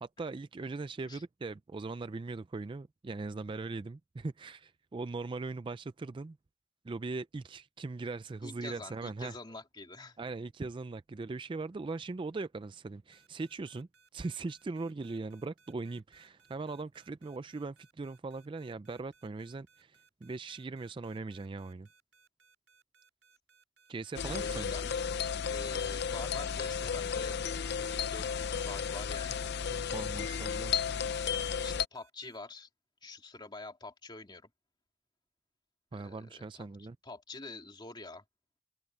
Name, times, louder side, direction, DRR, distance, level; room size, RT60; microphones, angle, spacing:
voice 1, 0.0-6.4 6.8-9.3 10.2-21.9 23.9-24.7 29.6-30.7 35.9-37.0, right 3 dB, 25° right, 0.3 m, -40 dB
voice 2, 8.4-10.2 24.3-24.9 25.5-27.4 27.8-29.5 31.6-32.7 33.0-34.5 35.9-38.2, left 3 dB, 20° left, 2.6 m, -46 dB
sound 1, 13.1-32.4, right 4 dB, 70° right, 7.1 m, -66 dB
sound 2, 24.2-31.9, left 7 dB, 55° left, 0.6 m, -33 dB
head